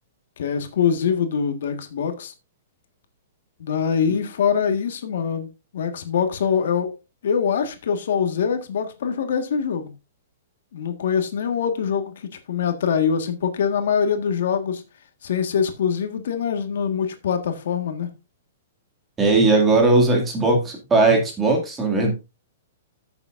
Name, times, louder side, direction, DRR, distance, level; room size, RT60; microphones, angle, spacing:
voice 1, 0.4-2.3 3.6-7.0 7.2-9.9 10.7-14.8 15.2-18.1, left 7 dB, 70° left, 1.6 m, -24 dB
voice 2, 19.2-22.1, right 3 dB, 10° right, 2.3 m, -18 dB
14.0 x 7.0 x 2.6 m
hypercardioid pair, 165°, 0 cm